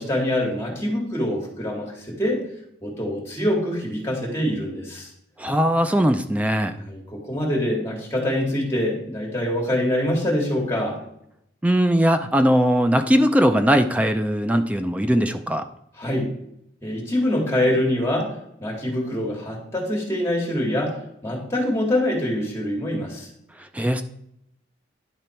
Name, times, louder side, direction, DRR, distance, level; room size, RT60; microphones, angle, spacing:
voice 1, 0.0-2.4 2.8-5.1 6.8-11.0 16.0-16.3 16.8-18.3 18.6-23.3, left 1 dB, 15° left, -2 dB, 2.1 m, -25 dB
voice 2, 5.4-6.8 11.6-15.7 23.6-24.0, equal, 5° right, 8 dB, 0.4 m, -20 dB
10.5 x 4.0 x 4.5 m, 0.76 s
head